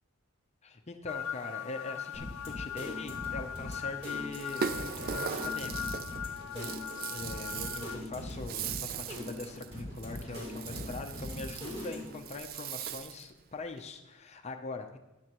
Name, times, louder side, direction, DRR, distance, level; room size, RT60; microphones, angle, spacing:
voice 1, 0.6-5.8 6.5-15.0, left 3 dB, 30° left, 5 dB, 0.6 m, -42 dB
sound 1, 1.1-8.0, left 8 dB, 85° left, 0.4 m, -39 dB
sound 2, 2.1-12.2, left 1 dB, 30° right, 3.3 m, -42 dB
Rattle (instrument), 4.3-13.3, right 8 dB, 45° right, 0.3 m, -40 dB
13.0 x 10.5 x 3.0 m, 0.99 s
head